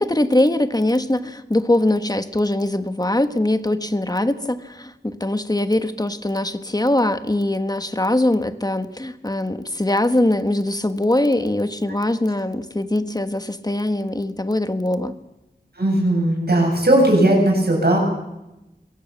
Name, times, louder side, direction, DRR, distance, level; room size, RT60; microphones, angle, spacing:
voice 1, 0.0-15.2, left 1 dB, 20° left, 9 dB, 1.4 m, -22 dB
voice 2, 15.8-18.0, right 1 dB, 65° right, 0 dB, 8.0 m, -17 dB
22.5 x 17.0 x 7.2 m, 0.94 s
wide cardioid pair, 55°, 18 cm